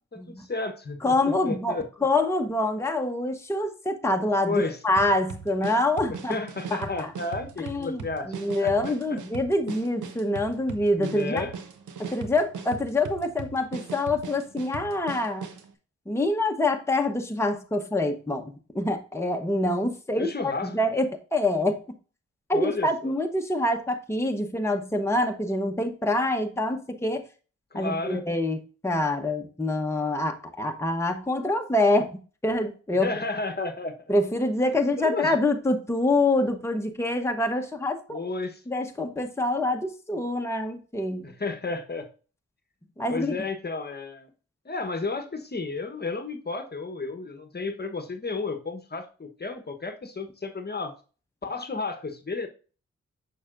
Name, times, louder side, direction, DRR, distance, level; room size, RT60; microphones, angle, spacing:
voice 1, 0.1-1.1 1.4-1.8 4.5-4.8 6.3-8.7 10.9-11.5 20.2-20.8 22.5-23.1 27.7-28.2 32.9-34.2 35.0-35.4 38.1-38.6 41.2-42.1 43.1-44.3 44.6-50.9 51.4-52.5, left 3 dB, 35° left, 7 dB, 1.1 m, -32 dB
voice 2, 1.0-6.4 6.7-7.1 7.6-11.4 12.1-15.5 16.1-21.8 22.5-27.2 27.7-32.2 32.4-33.1 34.1-38.2 38.7-41.3 43.0-43.3, left 2 dB, 10° left, 4 dB, 1.0 m, -26 dB
sound 1, 5.0-15.7, right 5 dB, 85° right, 0.9 m, -39 dB
6.9 x 6.2 x 2.5 m, 0.37 s
supercardioid pair, 40°, 30 cm